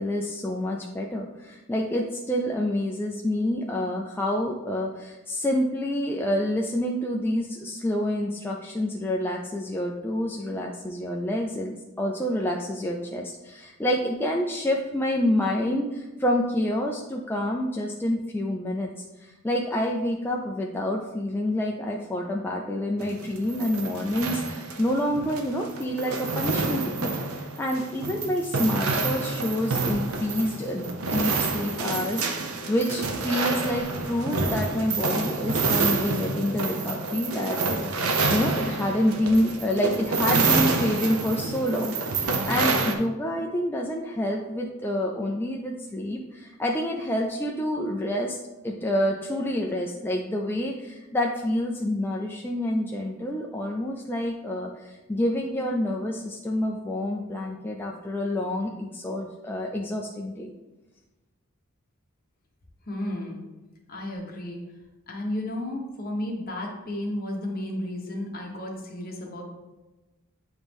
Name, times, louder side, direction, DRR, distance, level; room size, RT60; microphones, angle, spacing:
voice 1, 0.0-18.9 19.2-48.4 48.6-60.5, left 1 dB, 10° left, -1 dB, 0.3 m, -28 dB
sound 1, 23.0-42.9, right 3 dB, 85° right, 0.7 m, -28 dB
voice 2, 62.9-63.4 63.9-64.6 65.1-69.4, left 1 dB, 45° left, 0 dB, 1.1 m, -33 dB
9.0 x 3.0 x 3.5 m, 1.1 s
head